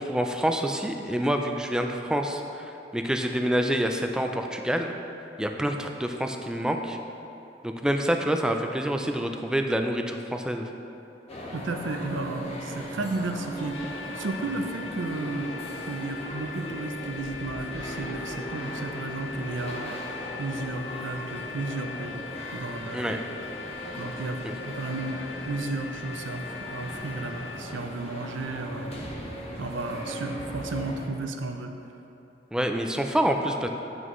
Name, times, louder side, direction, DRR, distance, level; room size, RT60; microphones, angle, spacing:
voice 1, 0.0-4.9 5.4-7.0 7.6-10.7 22.9-23.2 24.4-24.5 32.5-33.7, equal, 5° right, 4 dB, 0.3 m, -27 dB
sound 1, 11.3-31.1, equal, 35° left, 0.9 m, -38 dB
voice 2, 11.5-15.5 15.8-20.0 20.4-22.2 22.5-23.2 24.0-25.2 25.5-29.0 29.6-31.7, right 3 dB, 90° right, 6 dB, 0.6 m, -33 dB
sound 2, 13.7-27.6, left 6 dB, 80° left, 0.7 m, -41 dB
9.0 x 6.2 x 3.1 m, 2.9 s
head